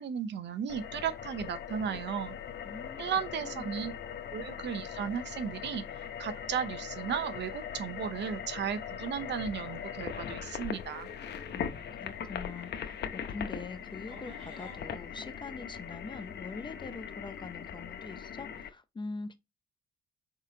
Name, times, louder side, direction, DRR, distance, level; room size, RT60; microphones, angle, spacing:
voice 1, 0.0-2.3 3.0-3.9 4.3-5.8 6.2-11.1, right 8 dB, 65° right, 0.7 m, -35 dB
sound 1, 0.7-18.7, left 8 dB, 60° left, 0.7 m, -40 dB
voice 2, 2.6-3.0 3.4-3.7 11.5-19.4, left 4 dB, 25° left, 0.6 m, -43 dB
sound 2, 5.0-14.8, right 1 dB, 30° right, 2.8 m, -59 dB
4.8 x 3.7 x 2.7 m
cardioid pair, 90°, 20 cm